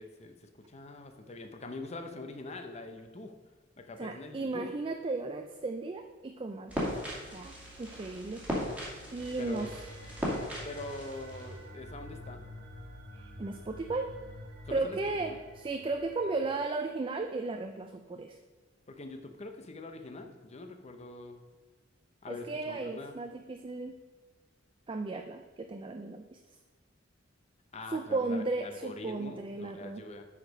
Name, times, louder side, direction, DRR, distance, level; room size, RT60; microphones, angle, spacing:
voice 1, 0.0-3.3 3.8-4.7 9.4-9.7 10.6-12.4 13.5-13.6 14.7-15.0 15.3-15.4 18.9-21.4 22.2-23.2 27.7-30.2, left 2 dB, 35° left, 6 dB, 0.7 m, -44 dB
voice 2, 4.0-8.5 9.1-9.8 13.1-14.1 14.7-18.4 22.3-24.0 24.9-26.4 27.9-30.0, right 3 dB, 25° right, 5 dB, 0.4 m, -35 dB
sound 1, 6.7-11.7, equal, 5° right, 2.3 m, -38 dB
sound 2, 9.2-16.5, equal, 55° right, 1.1 m, -48 dB
8.2 x 5.0 x 5.3 m, 1.3 s
head